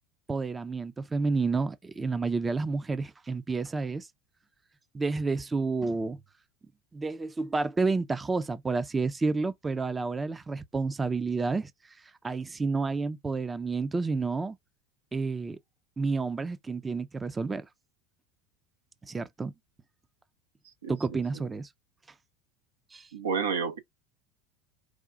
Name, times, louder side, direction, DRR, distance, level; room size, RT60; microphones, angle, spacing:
voice 1, 0.3-4.1 4.9-6.2 6.9-11.7 12.2-14.6 15.1-15.6 16.0-17.7 19.0-19.5 20.9-21.7 22.9-23.1, right 4 dB, 20° right, 0.5 m, -30 dB
voice 2, 23.1-23.8, right 6 dB, 90° right, 1.0 m, -29 dB
4.9 x 2.3 x 3.7 m
hypercardioid pair, 90°, 0 cm